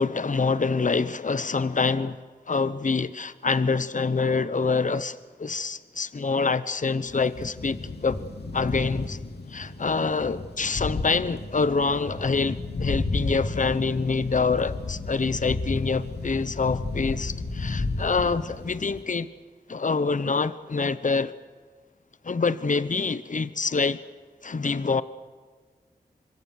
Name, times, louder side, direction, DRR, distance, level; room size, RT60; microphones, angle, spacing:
voice 1, 0.0-2.2 2.5-8.2 8.5-9.2 9.5-19.3 19.7-21.3 22.2-24.0 24.4-25.0, left 4 dB, 50° left, 1.0 m, -26 dB
sound 1, 7.1-19.0, left 3 dB, 75° left, 2.6 m, -33 dB
26.0 x 22.5 x 6.5 m
cardioid pair, 50°, 17 cm